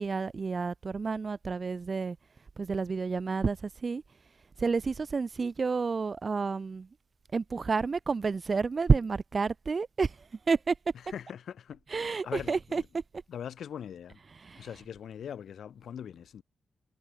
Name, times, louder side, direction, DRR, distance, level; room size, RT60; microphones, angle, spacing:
voice 1, 0.0-2.2 2.6-4.0 4.6-6.9 7.3-10.1 10.5-10.7 11.9-13.0 14.3-14.8, right 4 dB, 30° right, 1.6 m, -30 dB
voice 2, 11.0-12.9 13.3-14.2 14.6-16.4, left 8 dB, 75° left, 2.4 m, -42 dB
wide cardioid pair, 175°, 0 cm